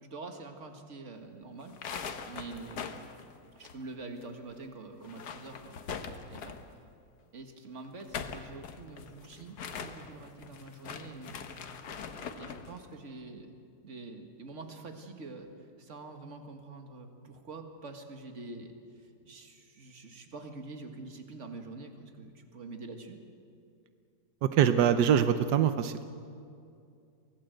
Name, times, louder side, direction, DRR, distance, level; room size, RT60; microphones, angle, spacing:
voice 1, 0.0-1.8 2.2-2.8 3.6-5.8 6.3-6.6 7.3-11.5 12.4-13.5 13.8-23.2, right 3 dB, 45° right, 5 dB, 2.0 m, -45 dB
sound 1, 1.6-4.2 4.5-4.6 5.0-6.7 7.8-12.7, left 6 dB, 75° left, 1.7 m, -42 dB
voice 2, 24.4-26.0, right 9 dB, 85° right, 10 dB, 1.3 m, -24 dB
24.0 x 16.5 x 7.9 m, 2.5 s
omnidirectional pair, 1.7 m